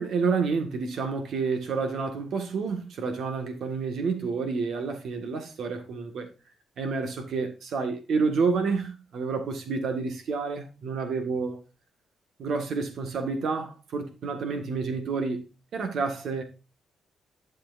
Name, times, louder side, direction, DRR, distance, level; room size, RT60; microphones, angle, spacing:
voice 1, 0.0-6.3 6.8-11.6 12.4-16.4, right 4 dB, 70° right, 1.8 m, -29 dB
11.5 x 6.8 x 2.6 m
cardioid pair, 80°, 0 cm